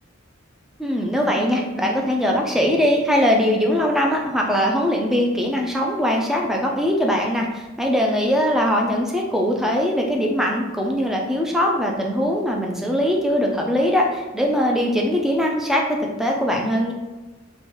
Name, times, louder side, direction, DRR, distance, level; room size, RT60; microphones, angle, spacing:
voice 1, 0.8-16.9, equal, ahead, 0 dB, 0.4 m, -21 dB
4.3 x 2.3 x 3.0 m, 1.2 s
head